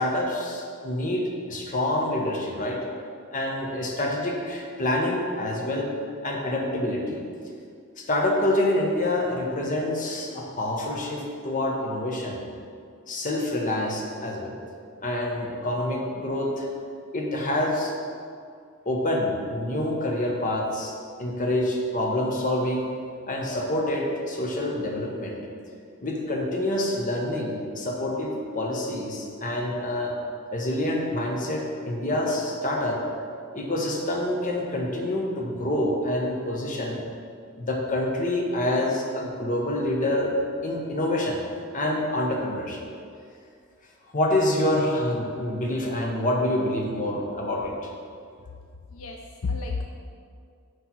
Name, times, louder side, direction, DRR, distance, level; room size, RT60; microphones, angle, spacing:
voice 1, 0.0-2.8 3.3-5.9 6.2-7.3 8.0-12.4 13.1-14.5 15.0-16.7 17.1-17.9 18.8-20.9 21.2-22.9 23.3-25.4 26.0-30.1 30.5-33.0 33.5-37.0 37.6-40.3 40.6-41.4 41.7-42.8 44.1-47.9, left 1 dB, 40° left, 0 dB, 1.1 m, -27 dB
voice 2, 48.9-49.9, left 4 dB, 70° left, 2 dB, 0.5 m, -31 dB
9.8 x 3.3 x 6.1 m, 2.3 s
head